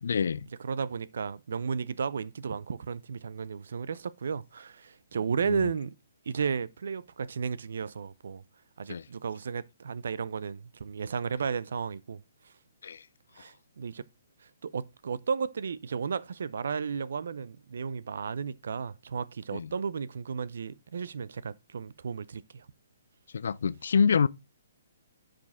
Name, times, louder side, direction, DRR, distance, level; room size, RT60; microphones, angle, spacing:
voice 1, 0.0-0.5 5.4-5.7 8.9-9.0 12.8-13.0 19.5-19.7 23.3-24.3, left 6 dB, 70° left, 0.5 m, -26 dB
voice 2, 0.6-5.9 6.3-8.4 8.8-12.5 13.4-14.0 14.6-22.7, right 6 dB, 65° right, 0.5 m, -34 dB
10.5 x 5.1 x 3.6 m
hypercardioid pair, 135°, 0 cm